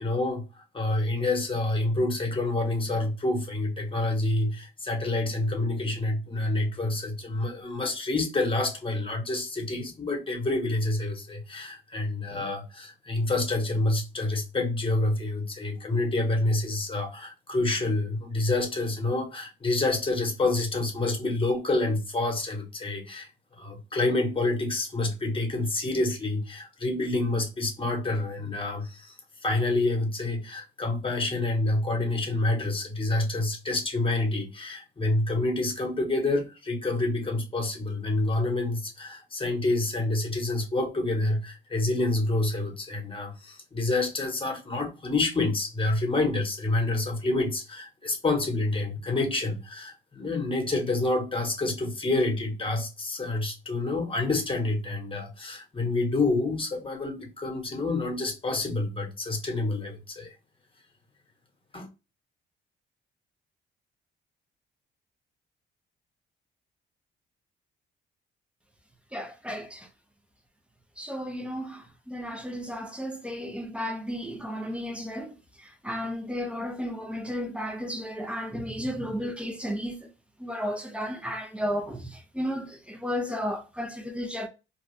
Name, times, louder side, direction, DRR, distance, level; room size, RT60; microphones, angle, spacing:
voice 1, 0.0-29.1 29.4-60.3 61.7-61.9, left 2 dB, 25° left, 1.2 m, -28 dB
voice 2, 69.1-69.9 71.0-80.1 80.4-84.5, equal, 5° right, 0.7 m, -33 dB
2.7 x 2.2 x 3.2 m
cardioid pair, 90°, 20 cm